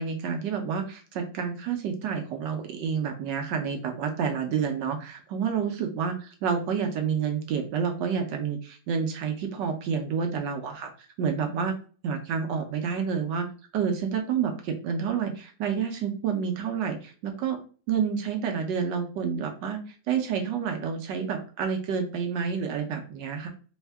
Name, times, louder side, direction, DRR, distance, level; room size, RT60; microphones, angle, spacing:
voice 1, 0.0-10.9 11.2-11.8 12.0-13.5 13.7-17.6 17.9-23.5, right 6 dB, 70° right, 4 dB, 1.1 m, -29 dB
3.4 x 2.2 x 3.3 m, 0.39 s
omnidirectional pair, 2.2 m